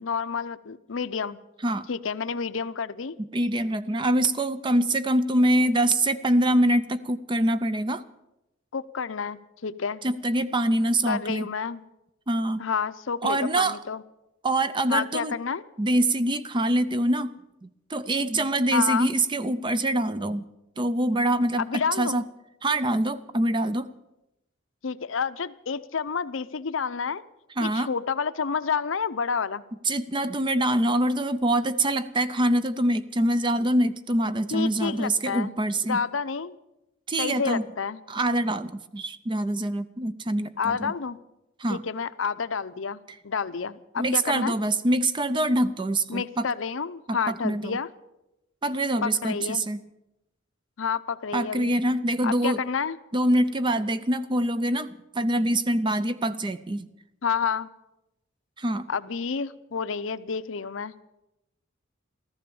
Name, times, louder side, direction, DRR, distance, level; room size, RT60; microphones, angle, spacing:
voice 1, 0.0-1.4 1.9-3.2 8.7-10.0 11.1-11.8 12.6-14.0 14.9-15.6 18.7-19.1 21.6-22.2 24.8-27.2 27.6-29.6 34.5-35.6 35.9-36.6 37.2-38.0 40.6-41.2 41.7-43.0 43.2-44.6 46.1-47.9 49.0-49.6 50.8-51.7 52.2-53.0 57.2-57.7 58.9-60.9, left 6 dB, 75° left, 14 dB, 0.7 m, -29 dB
voice 2, 3.3-8.0 10.0-11.5 12.3-12.6 13.2-13.8 14.4-15.3 15.8-17.3 17.6-20.5 20.8-22.2 22.6-23.9 27.6-27.9 29.8-36.0 37.1-37.6 38.1-40.9 41.6-41.8 44.0-46.5 47.1-47.8 48.6-49.8 51.3-52.6 53.1-56.9 58.6-58.9, right 1 dB, 25° right, 13 dB, 0.5 m, -25 dB
15.0 x 14.0 x 7.0 m, 0.91 s
head